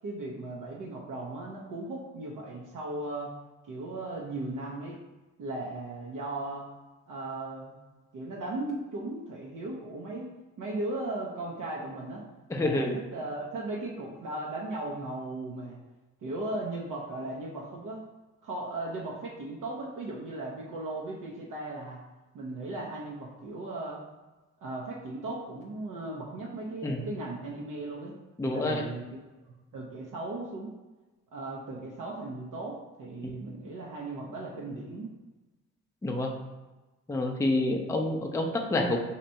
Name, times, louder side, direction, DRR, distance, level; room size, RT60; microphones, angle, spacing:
voice 1, 0.0-3.3 3.7-5.0 5.4-6.7 7.1-7.7 8.1-10.3 10.6-12.2 12.6-15.8 16.2-18.0 18.4-22.0 22.3-24.0 24.6-28.2 28.5-29.0 29.7-30.7 31.3-35.1, right 2 dB, 55° right, -3 dB, 0.8 m, -37 dB
voice 2, 12.5-13.0 26.8-27.0 28.4-28.8 36.0-36.4 37.1-39.0, left 2 dB, 10° left, 1 dB, 0.5 m, -28 dB
2.9 x 2.5 x 4.3 m, 1.1 s
supercardioid pair, 60°, 37 cm